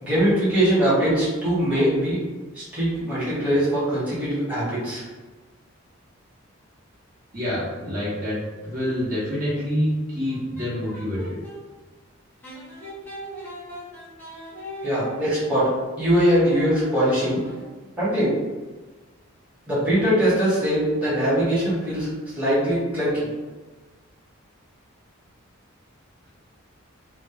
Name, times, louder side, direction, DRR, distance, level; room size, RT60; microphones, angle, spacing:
voice 1, 0.0-2.2 2.5-5.0 14.8-15.7 16.0-17.4 18.0-18.3 19.7-22.1 22.3-23.3, equal, 5° right, -11 dB, 1.0 m, -21 dB
voice 2, 7.3-11.4, equal, 40° right, -9 dB, 0.8 m, -27 dB
sound 1, 10.2-11.6 12.4-17.9, right 1 dB, 10° left, 0.6 m, -39 dB
2.1 x 2.1 x 3.3 m, 1.3 s
head